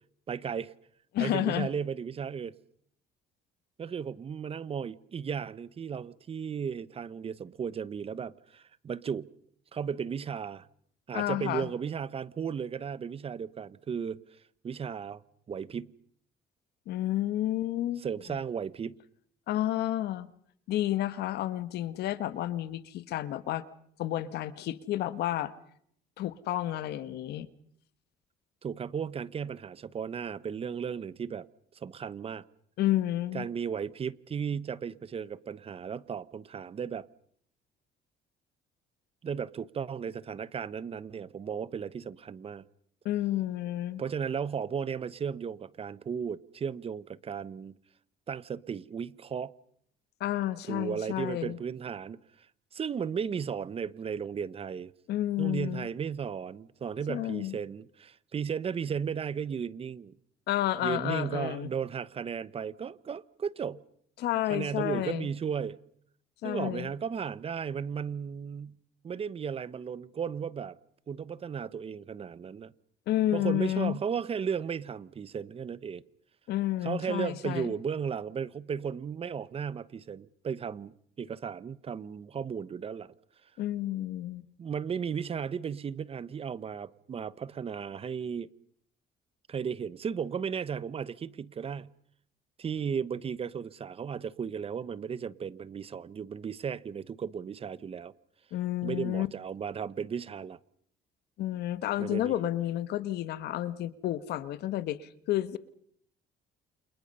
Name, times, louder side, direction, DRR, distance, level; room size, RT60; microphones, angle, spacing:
voice 1, 0.3-0.7 1.2-2.6 3.8-9.3 9.7-10.7 11.1-14.2 14.6-15.2 15.5-15.9 18.0-18.9 28.6-31.5 31.7-32.4 33.3-37.1 39.2-42.6 44.0-47.8 48.3-49.5 50.7-52.2 52.7-54.9 55.4-60.1 60.8-63.8 64.5-65.8 66.4-68.8 69.0-70.8 71.1-72.7 73.3-76.0 76.8-83.1 84.6-88.5 89.5-91.9 92.6-98.1 98.8-100.6 102.0-102.3, right 7 dB, 35° right, 0.9 m, -35 dB
voice 2, 1.1-1.7 11.1-11.7 16.9-18.0 18.3-18.4 19.5-20.3 20.7-23.6 24.0-25.5 26.2-27.5 32.8-33.5 43.0-44.0 50.2-51.6 55.1-55.9 57.1-57.5 60.5-61.7 64.2-65.3 66.4-66.9 73.1-73.9 76.5-77.7 83.6-84.4 98.5-99.3 101.4-105.6, left 13 dB, 75° left, 1.5 m, -30 dB
29.0 x 27.0 x 5.5 m
cardioid pair, 110°, 17 cm